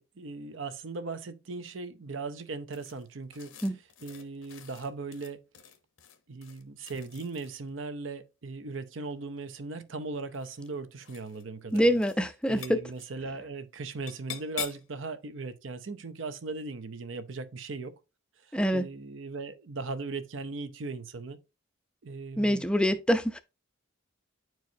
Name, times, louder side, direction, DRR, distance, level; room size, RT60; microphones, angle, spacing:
voice 1, 0.0-3.5 4.0-5.4 6.3-12.0 12.5-17.9 18.7-21.4 22.0-22.7, right 3 dB, 70° right, 0.7 m, -38 dB
sound 1, 2.7-7.7 9.0-9.6 10.3-10.7 11.0-11.4 11.7-12.2 12.4-13.1 14.1-14.9, left 9 dB, 80° left, 0.9 m, -45 dB
voice 2, 11.7-12.8 18.5-18.8 22.4-23.4, equal, 5° left, 0.4 m, -25 dB
9.2 x 4.6 x 2.7 m
head